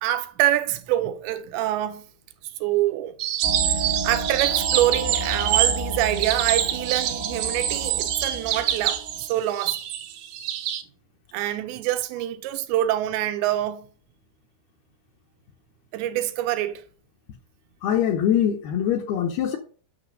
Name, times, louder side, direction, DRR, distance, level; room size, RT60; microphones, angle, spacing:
voice 1, 0.0-2.0 2.6-3.2 4.0-9.8 11.3-13.9 15.9-16.8, right 13 dB, 85° right, 3.0 m, -25 dB
sound 1, 3.2-10.8, right 11 dB, 70° right, 2.7 m, -26 dB
sound 2, 3.4-9.3, right 1 dB, 45° right, 0.7 m, -32 dB
voice 2, 17.8-19.6, left 9 dB, 75° left, 2.6 m, -23 dB
9.3 x 6.2 x 5.1 m
omnidirectional pair, 5.1 m